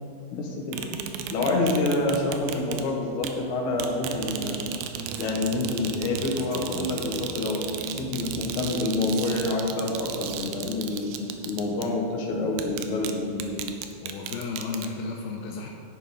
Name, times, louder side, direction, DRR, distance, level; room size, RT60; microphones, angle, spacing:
voice 1, 0.3-0.8 1.3-4.6 5.2-11.2 11.4-13.7, left 2 dB, 60° left, -1 dB, 2.6 m, -27 dB
sound 1, 0.7-2.9 3.2-3.4 3.8-12.0 12.6-13.1 13.4-14.9, right 8 dB, 85° right, 2.5 m, -35 dB
voice 2, 14.0-15.7, left 4 dB, 80° left, 0 dB, 2.5 m, -33 dB
11.0 x 9.1 x 4.2 m, 2.3 s
omnidirectional pair, 4.4 m